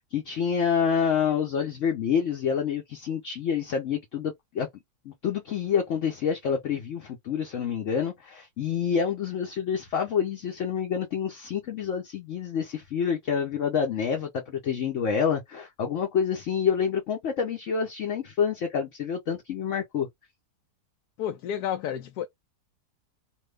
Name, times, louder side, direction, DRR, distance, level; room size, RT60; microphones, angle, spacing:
voice 1, 0.1-4.7 5.1-20.1, left 7 dB, 55° left, 1.0 m, -27 dB
voice 2, 21.2-22.3, left 9 dB, 80° left, 1.1 m, -31 dB
3.0 x 2.3 x 3.3 m
omnidirectional pair, 1.7 m